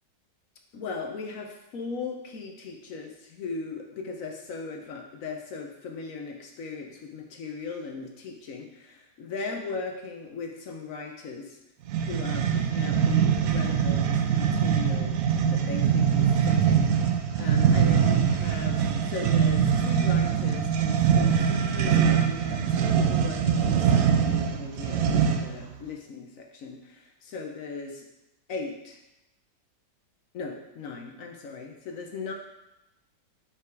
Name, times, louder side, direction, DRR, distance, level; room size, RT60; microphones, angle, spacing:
voice 1, 0.7-11.6 12.1-15.1 15.5-28.1 28.5-29.0 30.3-32.3, left 4 dB, 60° left, 3 dB, 1.0 m, -38 dB
sound 1, 11.9-25.6, right 7 dB, 65° right, 0.9 m, -23 dB
5.9 x 5.1 x 4.6 m, 0.89 s
omnidirectional pair, 1.9 m